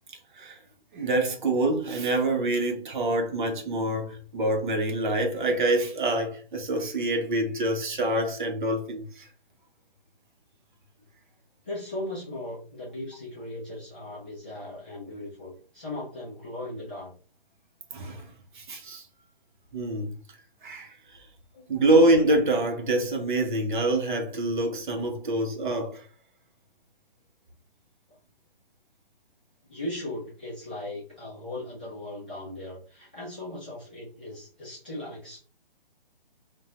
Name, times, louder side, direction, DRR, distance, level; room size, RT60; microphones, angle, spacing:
voice 1, 0.9-9.3 17.9-19.1 19.7-20.1 20.6-21.3 21.7-26.0, right 1 dB, 55° right, 1.0 m, -26 dB
voice 2, 11.6-17.1 21.5-21.8 29.7-35.4, left 1 dB, 10° left, 0.4 m, -38 dB
3.5 x 2.2 x 2.9 m
hypercardioid pair, 155°, 29 cm